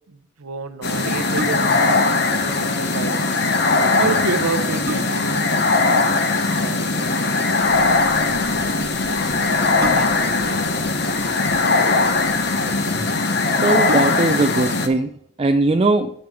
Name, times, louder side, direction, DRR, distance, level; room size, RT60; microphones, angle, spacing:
voice 1, 0.1-3.5 4.0-5.5 6.1-7.3 8.5-8.7 9.0-10.7, right 5 dB, 85° right, 11 dB, 0.8 m, -30 dB
sound 1, 0.8-14.9, left 3 dB, 50° left, 0.8 m, -20 dB
sound 2, 1.3-1.9 3.9-4.0 4.5-5.4 7.0-7.3 9.8-10.4 11.4-12.1 12.8-12.9 13.2-13.3 13.8-14.5 15.0-15.1, right 1 dB, 45° right, 1.1 m, -31 dB
sound 3, 7.6-13.2, equal, ahead, 1.5 m, -40 dB
voice 2, 13.6-15.1 15.4-16.1, right 2 dB, 25° right, 5 dB, 0.4 m, -19 dB
9.1 x 7.6 x 3.5 m, 0.65 s
head